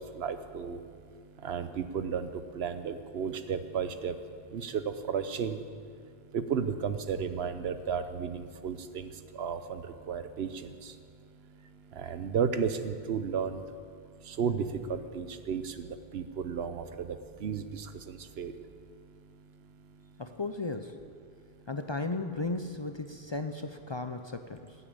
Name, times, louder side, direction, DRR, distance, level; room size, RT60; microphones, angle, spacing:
voice 1, 0.2-0.8 1.4-2.3 2.6-4.1 4.5-5.6 6.3-9.1 9.4-9.8 10.1-10.5 12.0-13.6 14.4-15.9 16.1-17.1 17.4-18.5, right 6 dB, 85° right, 10 dB, 1.0 m, -33 dB
voice 2, 20.2-21.0 21.7-24.8, left 2 dB, 35° left, 7 dB, 0.5 m, -35 dB
13.5 x 8.4 x 8.7 m, 2.2 s
omnidirectional pair, 1.0 m